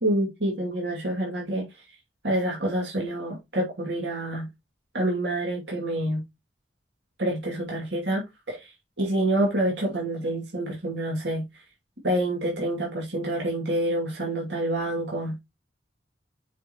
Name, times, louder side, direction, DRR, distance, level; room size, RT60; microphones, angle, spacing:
voice 1, 0.0-1.7 2.2-4.5 4.9-6.2 7.2-8.2 8.5-8.7 9.0-11.4 12.0-15.4, right 1 dB, 70° right, 2.6 m, -27 dB
7.3 x 5.6 x 3.0 m
head